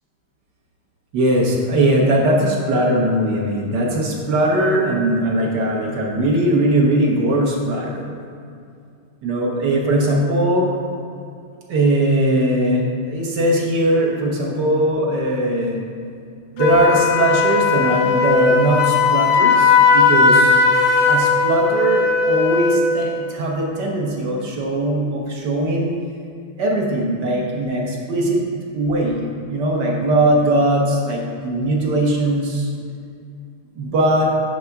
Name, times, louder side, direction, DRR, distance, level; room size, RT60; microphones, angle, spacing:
voice 1, 1.1-8.1 9.2-10.6 11.7-15.8 16.5-25.9 26.6-28.4 28.7-32.7 33.8-34.3, right 1 dB, 60° right, -1 dB, 1.4 m, -20 dB
Wind instrument woodwind instrument, 16.6-22.9, left 4 dB, 85° left, 1.7 m, -16 dB
9.4 x 3.5 x 5.8 m, 2.4 s
omnidirectional pair, 2.3 m